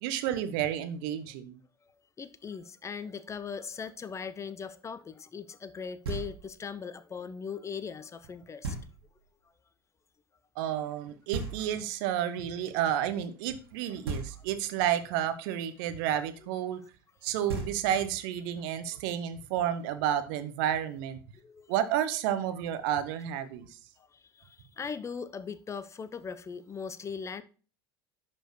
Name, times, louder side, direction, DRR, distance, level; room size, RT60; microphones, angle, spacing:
voice 1, 0.0-1.6 10.6-16.8 17.2-21.2 21.7-23.8, right 10 dB, 60° right, 0.8 m, -31 dB
voice 2, 2.2-8.8 21.4-21.7 24.1-27.4, left 6 dB, 20° left, 0.5 m, -39 dB
Knock, 6.0-6.7 8.6-9.3 11.3-12.1 14.0-14.8 17.1-17.2 17.5-18.3, right 3 dB, 75° right, 1.9 m, -38 dB
11.0 x 4.4 x 3.1 m
figure-of-eight pair, 70°, 13 cm